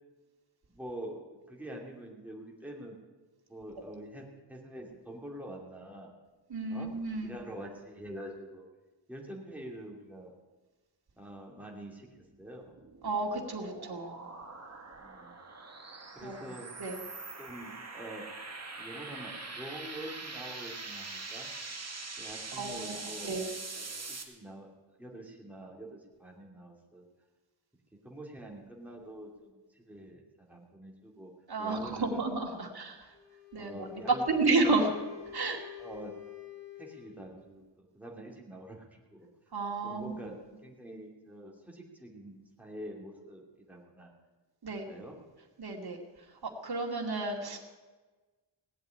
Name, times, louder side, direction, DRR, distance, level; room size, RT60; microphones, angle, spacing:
voice 1, 0.7-1.2 1.5-3.0 3.5-6.1 6.7-6.9 7.1-8.6 9.1-10.3 11.2-12.7 14.9-15.3 16.1-16.7 17.4-18.3 18.8-21.5 22.2-23.3 23.7-24.7 25.0-27.0 28.0-31.3 31.6-32.2 32.5-32.8 33.5-34.6 35.8-36.1 36.8-39.3 39.8-44.1 44.7-45.2, right 1 dB, 5° right, -2 dB, 2.8 m, -46 dB
voice 2, 6.5-7.4 13.0-14.2 16.2-16.4 16.8-17.0 22.6-23.5 31.5-33.0 33.5-33.9 34.3-34.9 35.3-35.6 39.5-40.1 44.6-44.8 45.6-46.0 46.6-47.6, right 3 dB, 55° right, 1 dB, 2.5 m, -31 dB
sound 1, 12.3-24.2, right 3 dB, 35° right, 2.0 m, -43 dB
Wind instrument woodwind instrument, 33.1-37.5, left 9 dB, 35° left, 3.0 m, -47 dB
18.0 x 8.1 x 9.7 m, 1.3 s
wide cardioid pair, 105°, 45 cm